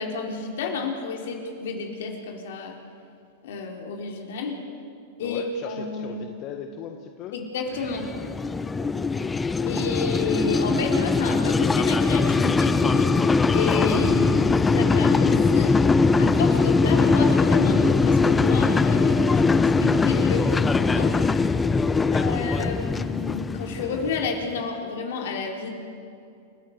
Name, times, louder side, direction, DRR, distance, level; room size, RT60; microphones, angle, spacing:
voice 1, 0.0-2.8 3.4-4.6 5.2-6.2 7.3-8.1 9.6-13.2 13.5-15.8 16.2-21.4 22.1-25.7, left 4 dB, 70° left, 1 dB, 4.0 m, -30 dB
voice 2, 5.2-7.3 8.7-9.2 21.8-22.3, left 9 dB, 45° left, 4 dB, 1.5 m, -38 dB
sound 1, 7.8-24.4, left 4 dB, 15° left, 0.7 m, -21 dB
29.0 x 12.5 x 8.1 m, 2.5 s
hypercardioid pair, 115°, 0 cm